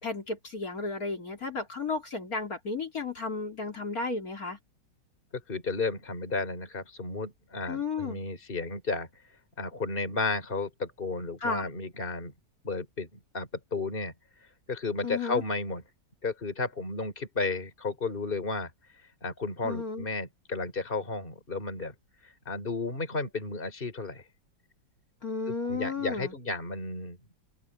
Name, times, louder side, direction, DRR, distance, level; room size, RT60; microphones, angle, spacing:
voice 1, 0.0-4.6 7.7-8.2 11.4-11.7 15.0-15.4 19.6-20.1 25.2-26.3, left 4 dB, 50° left, 3.7 m, -33 dB
voice 2, 5.3-9.1 9.6-12.3 12.6-14.1 14.7-15.8 16.2-18.7 19.2-21.9 22.2-24.2 25.5-27.2, left 3 dB, 30° left, 3.5 m, -33 dB
omnidirectional pair, 2.0 m